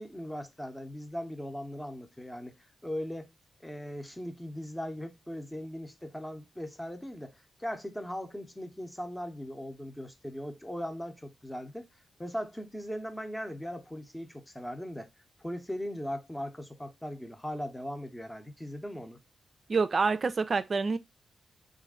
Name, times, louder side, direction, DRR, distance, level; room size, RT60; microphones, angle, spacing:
voice 1, 0.0-3.3 3.6-11.9 12.2-15.1 15.4-19.2, equal, 10° left, 0.8 m, -39 dB
voice 2, 19.7-21.0, right 4 dB, 50° right, 0.4 m, -27 dB
3.0 x 2.5 x 3.6 m
supercardioid pair, 45°, 0 cm